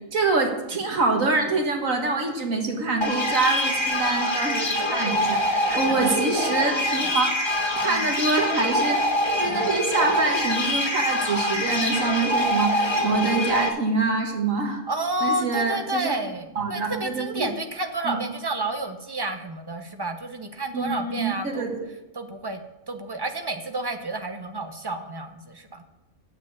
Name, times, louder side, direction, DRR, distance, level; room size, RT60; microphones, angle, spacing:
voice 1, 0.1-7.3 7.7-9.0 9.4-14.8 15.2-16.2 16.6-17.5 18.0-18.2 20.7-21.8, right 3 dB, 75° right, 2 dB, 1.9 m, -25 dB
sound 1, 3.0-13.7, left 1 dB, 25° left, 0.9 m, -25 dB
voice 2, 5.7-6.1 7.0-7.1 7.8-8.1 14.9-21.7 22.1-22.6 22.9-25.8, right 2 dB, 20° right, 6 dB, 0.8 m, -30 dB
8.7 x 7.5 x 8.1 m, 0.96 s
omnidirectional pair, 1.4 m